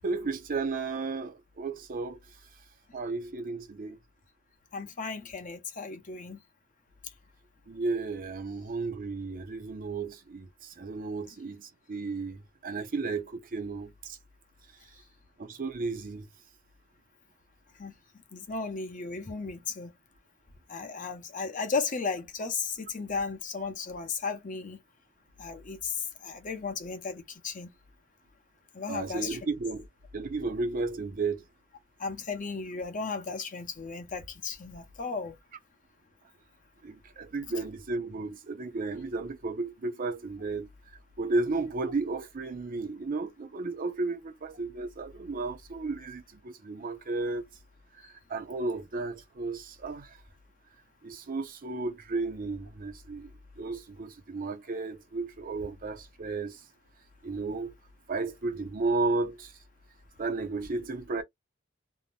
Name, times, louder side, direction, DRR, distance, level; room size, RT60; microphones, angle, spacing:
voice 1, 0.0-2.2 2.9-4.0 7.7-14.2 15.4-16.3 28.9-29.9 30.1-31.4 36.8-40.7 41.2-47.5 48.0-50.2 51.0-56.6 57.2-57.7 58.1-59.5 60.2-61.2, right 3 dB, 45° right, 0.5 m, -33 dB
voice 2, 4.7-6.4 17.8-17.9 18.3-19.9 20.7-24.8 25.4-27.7 28.7-29.4 32.0-35.4, left 4 dB, 40° left, 0.7 m, -35 dB
2.7 x 2.0 x 3.2 m
head